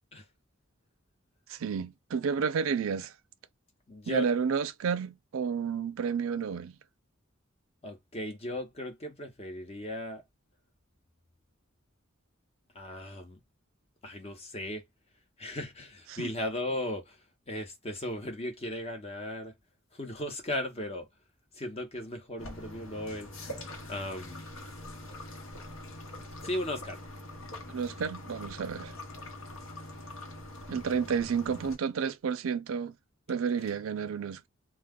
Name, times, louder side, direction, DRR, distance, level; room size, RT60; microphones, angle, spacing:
voice 1, 1.5-3.1 4.1-6.8 16.1-16.3 27.7-28.9 30.7-32.9 33.3-34.5, right 6 dB, 80° right, 0.4 m, -31 dB
voice 2, 3.9-4.3 7.8-10.2 12.7-13.4 14.0-14.8 15.4-17.2 17.5-19.5 19.9-21.1 21.5-23.3 23.9-24.4 26.4-27.0, left 1 dB, 30° left, 0.8 m, -36 dB
sound 1, 22.4-31.8, left 1 dB, 80° left, 1.0 m, -44 dB
2.2 x 2.2 x 3.5 m
head